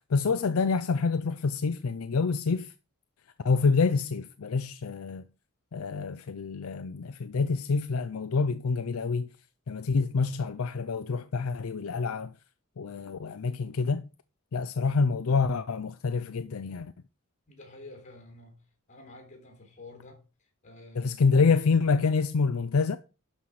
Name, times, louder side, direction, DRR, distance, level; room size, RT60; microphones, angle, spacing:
voice 1, 0.1-2.7 3.4-5.2 5.7-9.3 9.7-12.3 12.8-14.0 14.5-16.9 21.0-23.0, left 4 dB, 70° left, 0.5 m, -27 dB
voice 2, 17.5-18.6 18.9-20.2 20.6-21.5, left 2 dB, 35° left, 3.7 m, -49 dB
11.5 x 5.6 x 4.8 m
head